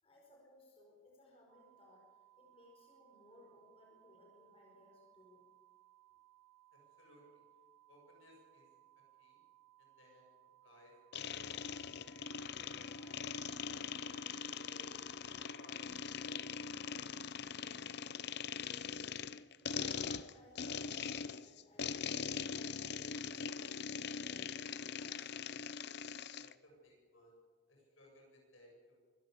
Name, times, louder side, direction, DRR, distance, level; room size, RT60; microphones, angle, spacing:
voice 1, 0.0-2.1 2.4-5.4 20.0-25.3, left 1 dB, 30° left, -1 dB, 5.0 m, -63 dB
sound 1, 1.5-16.9, right 16 dB, 85° right, 3.6 m, -66 dB
voice 2, 6.7-7.4 7.9-9.4 9.8-10.3 10.6-15.0 15.3-17.0 17.3-19.1 20.4-20.8 26.2-27.4 27.7-29.0, left 1 dB, 75° left, -1 dB, 7.8 m, -64 dB
sound 2, 11.1-26.5, left 6 dB, 55° left, 0.6 m, -42 dB
24.5 x 13.5 x 8.4 m, 1.5 s
head